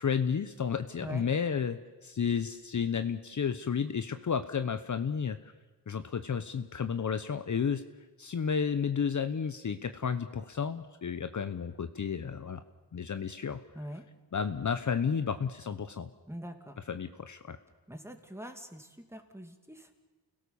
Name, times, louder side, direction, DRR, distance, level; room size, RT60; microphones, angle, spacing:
voice 1, 0.0-5.4 5.9-7.8 8.2-12.6 12.9-13.6 14.3-16.1 16.9-17.6, left 6 dB, 45° left, 9 dB, 1.0 m, -32 dB
voice 2, 16.3-16.8 17.9-20.0, right 1 dB, 5° right, 6 dB, 2.4 m, -43 dB
29.5 x 17.0 x 7.1 m, 1.2 s
wide cardioid pair, 105°, 42 cm